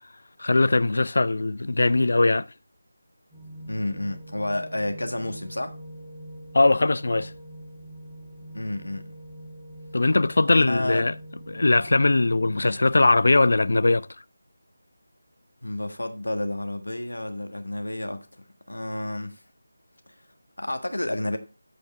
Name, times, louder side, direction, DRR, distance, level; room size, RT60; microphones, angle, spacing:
voice 1, 0.4-2.5 6.5-7.3 9.9-11.1 11.5-14.1, left 2 dB, 55° left, 0.4 m, -20 dB
sound 1, 3.3-13.0, right 1 dB, 15° right, 1.4 m, -43 dB
voice 2, 3.6-5.8 8.5-9.0 10.5-11.1 15.6-18.3 18.7-19.4 20.6-21.4, left 1 dB, 75° left, 1.5 m, -30 dB
14.0 x 5.2 x 3.3 m
figure-of-eight pair, 160°, 0 cm